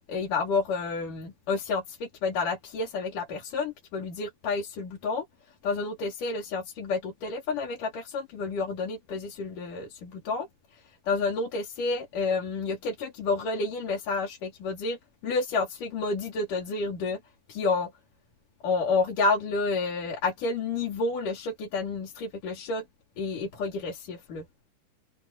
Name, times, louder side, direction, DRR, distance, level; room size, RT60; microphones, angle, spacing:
voice 1, 0.1-5.3 5.6-17.2 17.5-17.9 18.6-22.8 23.2-24.5, left 3 dB, 75° left, 5.1 m, -30 dB
omnidirectional pair, 3.7 m